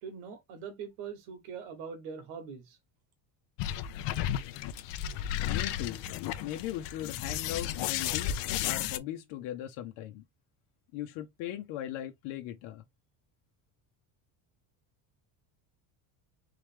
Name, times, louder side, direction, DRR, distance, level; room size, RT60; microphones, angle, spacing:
voice 1, 0.0-2.8, right 6 dB, 80° right, 1.9 m, -42 dB
sound 1, 3.6-9.0, left 11 dB, 60° left, 0.7 m, -33 dB
voice 2, 5.4-6.0 6.4-8.4 8.6-10.2 10.9-12.8, left 12 dB, 80° left, 1.0 m, -38 dB
3.8 x 3.3 x 3.4 m
cardioid pair, 155°, 49 cm